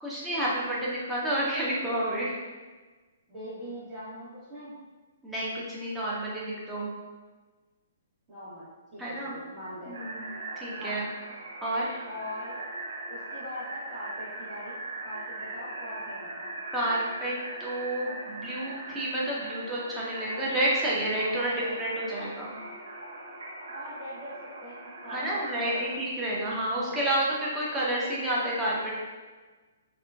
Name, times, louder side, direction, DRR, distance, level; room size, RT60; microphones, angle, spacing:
voice 1, 0.0-2.4 5.2-6.9 9.0-9.3 9.9-10.2 10.6-11.1 11.6-12.0 16.7-17.3 17.6-22.5 25.1-28.9, right 1 dB, 10° right, -7 dB, 0.8 m, -30 dB
voice 2, 3.3-4.7 8.3-9.9 10.8-11.0 12.0-12.6 13.1-16.5 21.3-21.8 23.7-25.9 26.7-27.0, equal, 25° right, -14 dB, 1.2 m, -42 dB
sound 1, 9.9-26.0, right 2 dB, 70° right, 0.6 m, -40 dB
3.6 x 2.3 x 2.3 m, 1.3 s
hypercardioid pair, 130°, 0 cm